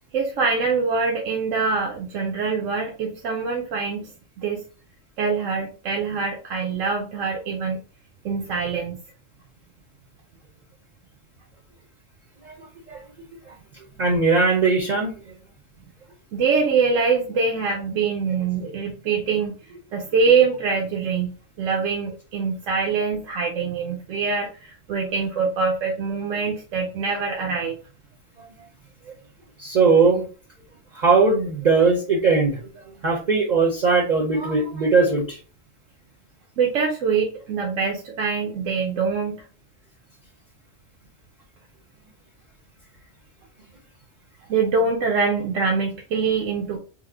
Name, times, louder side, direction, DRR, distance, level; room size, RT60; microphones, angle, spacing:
voice 1, 0.1-4.6 5.2-7.8 8.2-9.0 16.3-19.5 19.9-27.8 36.6-39.4 44.5-46.8, right 5 dB, 85° right, 0 dB, 1.0 m, -24 dB
voice 2, 12.4-13.0 13.5-13.6 14.0-15.2 29.6-30.3 30.9-35.4, right 4 dB, 45° right, -2 dB, 0.6 m, -20 dB
3.1 x 2.0 x 3.3 m, 0.37 s
omnidirectional pair, 1.3 m